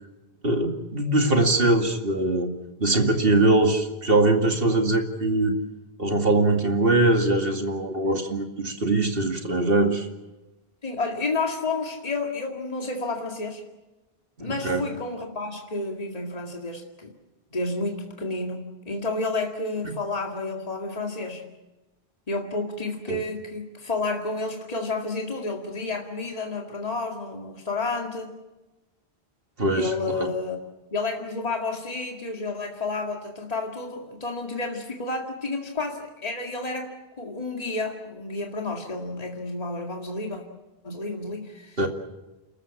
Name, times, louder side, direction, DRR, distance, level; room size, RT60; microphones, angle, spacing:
voice 1, 0.4-2.5 2.8-5.6 6.0-10.1 14.6-14.8 19.8-19.9 23.1-23.2 29.6-30.3 41.8-41.9, right 2 dB, 60° right, 4 dB, 2.6 m, -22 dB
voice 2, 10.8-13.6 14.4-17.1 17.5-21.4 22.3-28.3 29.7-30.6 30.9-40.4 40.8-41.8, left 3 dB, 35° left, 1 dB, 2.3 m, -30 dB
30.0 x 13.5 x 8.5 m, 1.1 s
omnidirectional pair, 1.1 m